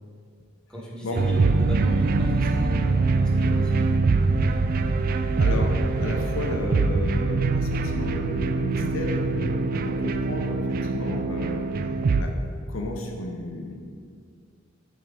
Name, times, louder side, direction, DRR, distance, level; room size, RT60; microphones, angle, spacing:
voice 1, 0.7-3.9, right 1 dB, 5° left, -6 dB, 1.1 m, -36 dB
sound 1, 1.1-12.2, right 3 dB, 45° right, 0.3 m, -23 dB
voice 2, 5.4-11.6 12.2-12.3 12.7-13.7, left 2 dB, 75° left, 2 dB, 0.7 m, -33 dB
7.1 x 3.7 x 4.9 m, 2.1 s
head